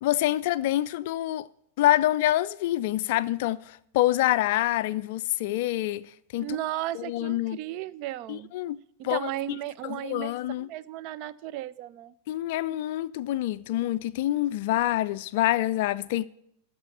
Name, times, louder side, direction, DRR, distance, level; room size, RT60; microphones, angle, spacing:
voice 1, 0.0-1.5 1.8-6.5 6.9-7.6 8.3-8.8 9.0-9.3 9.8-10.7 12.3-16.3, left 14 dB, 50° left, 0.3 m, -26 dB
voice 2, 6.4-8.5 9.0-12.1, right 13 dB, 45° right, 0.4 m, -35 dB
13.5 x 4.9 x 8.2 m
figure-of-eight pair, 90°, 0 cm